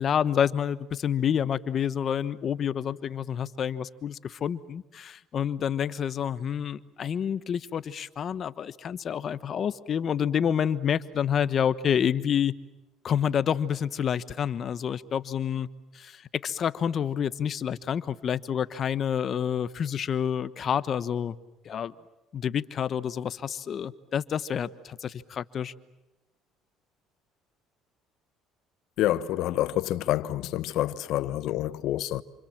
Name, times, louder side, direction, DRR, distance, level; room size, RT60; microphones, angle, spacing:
voice 1, 0.0-12.5 13.0-15.7 15.9-21.4 21.6-21.9 22.3-25.7, left 8 dB, 45° left, 1.2 m, -28 dB
voice 2, 29.0-32.2, left 14 dB, 70° left, 1.1 m, -27 dB
28.5 x 27.5 x 7.5 m
cardioid pair, 100°, 0 cm